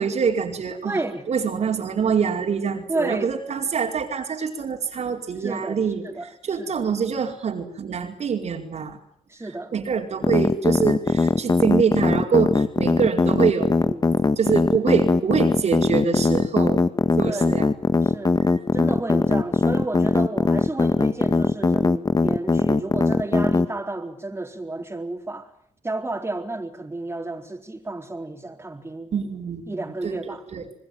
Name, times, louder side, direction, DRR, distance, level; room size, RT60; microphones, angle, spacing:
voice 1, 0.0-1.0 1.3-6.1 6.4-9.0 9.7-13.7 14.4-16.8 17.2-17.7 29.1-30.6, right 6 dB, 65° right, 2 dB, 4.7 m, -25 dB
voice 2, 0.8-1.3 2.9-3.3 5.4-6.3 6.6-6.9 9.3-9.7 13.8-14.0 17.2-17.6 18.0-18.4 18.7-25.5 25.8-29.1 29.7-30.4, right 2 dB, 20° right, 3 dB, 4.3 m, -31 dB
sound 1, 10.2-23.7, left 3 dB, 30° left, 1.9 m, -19 dB
26.0 x 20.0 x 9.3 m, 0.64 s
cardioid pair, 65°, 12 cm